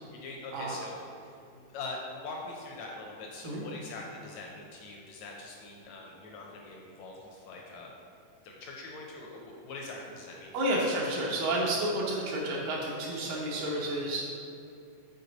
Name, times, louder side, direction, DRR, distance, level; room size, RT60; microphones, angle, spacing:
voice 1, 0.1-7.9 8.4-10.8, left 3 dB, 80° left, -1 dB, 1.6 m, -43 dB
voice 2, 10.5-14.3, right 1 dB, 85° right, -4 dB, 2.5 m, -30 dB
6.7 x 4.5 x 4.0 m, 2.5 s
omnidirectional pair, 3.8 m